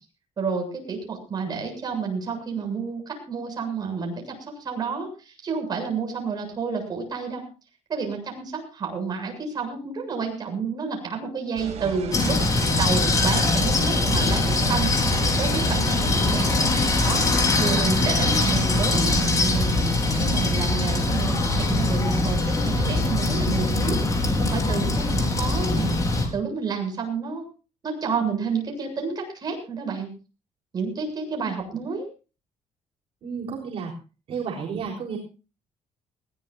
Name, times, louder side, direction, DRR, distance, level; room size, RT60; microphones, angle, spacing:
voice 1, 0.4-4.4 4.6-7.4 7.9-12.4 12.8-14.9 15.4-16.5 17.0-17.3 17.6-27.5 27.8-30.1 30.7-32.1, right 5 dB, 35° right, 2 dB, 7.4 m, -30 dB
sound 1, 11.6-20.5, right 6 dB, 75° right, 5.5 m, -35 dB
voice 2, 11.8-12.2 33.2-33.9 34.3-35.2, right 6 dB, 60° right, -2 dB, 4.0 m, -32 dB
sound 2, 12.1-26.3, left 2 dB, 30° left, 4.9 m, -22 dB
21.0 x 17.5 x 2.6 m, 0.34 s
cardioid pair, 150°, 11 cm